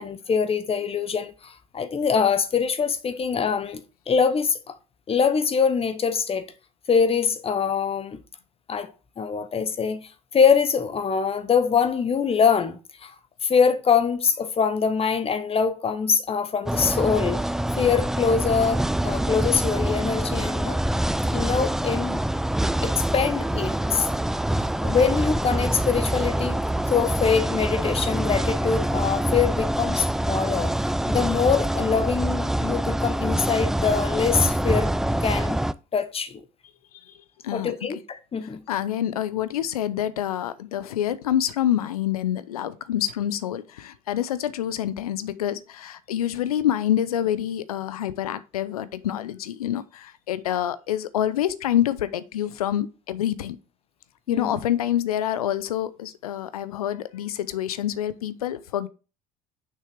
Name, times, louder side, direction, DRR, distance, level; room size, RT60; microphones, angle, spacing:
voice 1, 0.0-4.7 5.1-6.5 6.9-8.2 8.7-8.9 9.2-10.0 10.3-13.1 13.4-17.4 17.8-20.8 21.3-22.2 22.8-24.1 24.8-26.6 26.9-30.7 31.1-34.9 35.2-35.6 35.9-36.4 37.5-38.6 54.3-54.6, left 6 dB, 30° left, 1.0 m, -23 dB
sound 1, 16.7-35.7, right 1 dB, ahead, 0.3 m, -25 dB
voice 2, 37.4-38.0 38.4-53.6 54.3-58.9, left 11 dB, 85° left, 0.5 m, -27 dB
6.7 x 5.5 x 3.4 m
hypercardioid pair, 65°, 19 cm